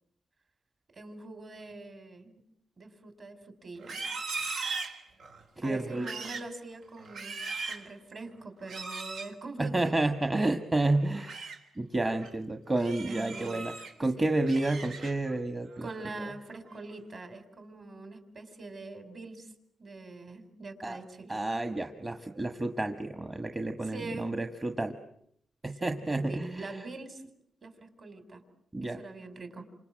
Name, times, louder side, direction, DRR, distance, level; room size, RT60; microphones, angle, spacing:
voice 1, 0.9-2.4 2.8-4.0 5.6-7.4 7.7-10.1 13.1-13.6 14.2-14.4 15.8-19.5 19.8-21.4 23.9-24.3 25.8-27.3 27.6-28.4 28.8-29.7, right 3 dB, 45° right, 8 dB, 4.7 m, -44 dB
Livestock farm animals working animals, 3.8-5.4 5.9-6.5 7.0-7.9 8.6-9.3 11.0-11.6 12.0-12.3 12.7-13.9 14.3-15.3 15.7-16.1 16.5-16.9, right 4 dB, 80° right, 3.6 m, -39 dB
voice 2, 5.6-6.1 9.6-11.5 11.8-13.7 14.0-15.9 20.8-21.0 21.3-25.0 25.6-26.8 28.7-29.0, right 2 dB, 20° right, 6 dB, 1.6 m, -30 dB
29.0 x 26.5 x 7.6 m, 0.72 s
cardioid pair, 115°, 0 cm